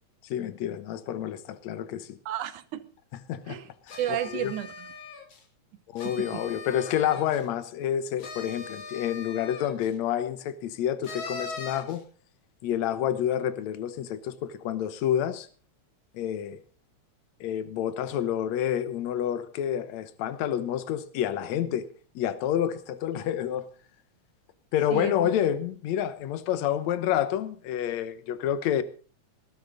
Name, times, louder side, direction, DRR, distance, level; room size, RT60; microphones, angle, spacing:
voice 1, 0.2-2.2 3.3-3.6 3.9-4.0 4.3-4.5 5.9-12.0 12.6-15.5 16.1-16.6 17.4-21.9 22.2-23.7 24.7-28.8, left 10 dB, 70° left, 2.3 m, -28 dB
voice 2, 2.3-2.8 3.5-3.7 4.0-4.9 6.0-6.4 24.9-25.1, right 12 dB, 90° right, 2.6 m, -32 dB
sound 1, 3.9-5.4 6.0-7.5 8.2-9.9 11.0-12.0, left 4 dB, 55° left, 3.6 m, -40 dB
19.0 x 12.0 x 4.0 m
omnidirectional pair, 3.4 m